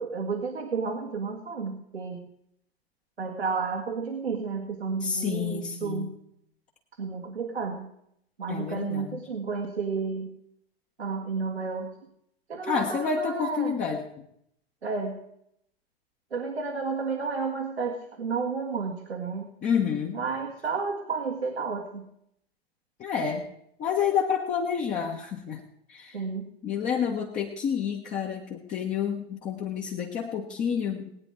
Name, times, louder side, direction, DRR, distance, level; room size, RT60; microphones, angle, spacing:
voice 1, 0.0-2.2 3.2-6.1 7.0-7.9 8.4-10.3 11.0-11.9 12.5-13.8 14.8-15.2 16.3-19.5 20.1-22.0 26.1-26.5, right 5 dB, 75° right, 1 dB, 1.8 m, -31 dB
voice 2, 5.0-6.1 8.5-9.2 12.6-14.2 19.6-20.2 23.0-23.5 23.8-25.6 25.9-26.2 26.6-31.1, left 7 dB, 25° left, 0 dB, 1.3 m, -29 dB
20.0 x 9.4 x 4.6 m, 0.72 s
figure-of-eight pair, 95°, 31 cm